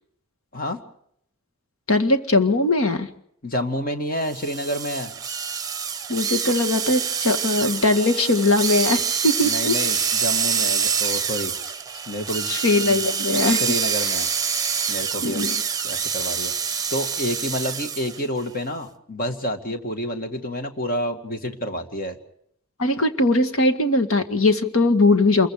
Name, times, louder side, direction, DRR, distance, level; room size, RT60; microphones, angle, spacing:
voice 1, 1.9-3.1 6.1-9.8 12.5-13.6 15.2-15.6 22.8-25.5, left 2 dB, 70° left, 9 dB, 1.9 m, -20 dB
voice 2, 3.4-5.1 9.4-11.8 12.1-12.5 12.8-13.0 13.5-14.3 14.9-15.5 15.8-16.5 16.9-22.2, equal, 40° left, 6 dB, 2.3 m, -29 dB
sound 1, 4.3-18.2, right 7 dB, 15° right, 1.1 m, -26 dB
27.5 x 22.5 x 5.0 m, 0.70 s
head